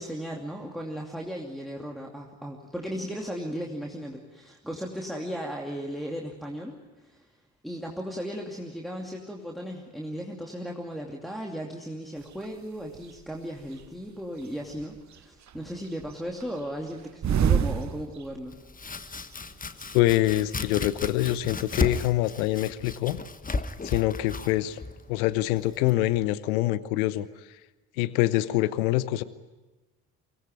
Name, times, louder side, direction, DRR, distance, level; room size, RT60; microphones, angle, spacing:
voice 1, 0.0-7.3 7.6-18.6, equal, ahead, -1 dB, 2.7 m, -36 dB
sound 1, 12.3-12.5 12.9-13.9 14.4-15.2 15.5-18.6 18.9-19.0 19.1-19.9, right 8 dB, 40° right, 1.2 m, -28 dB
Domestic sounds home sounds, 18.5-26.2, left 3 dB, 20° left, 1.2 m, -35 dB
voice 2, 19.9-23.2 23.8-24.8 25.1-27.3 28.0-29.2, left 16 dB, 70° left, 17 dB, 1.0 m, -25 dB
24.0 x 18.5 x 9.4 m, 1.2 s
figure-of-eight pair, 50°, 44 cm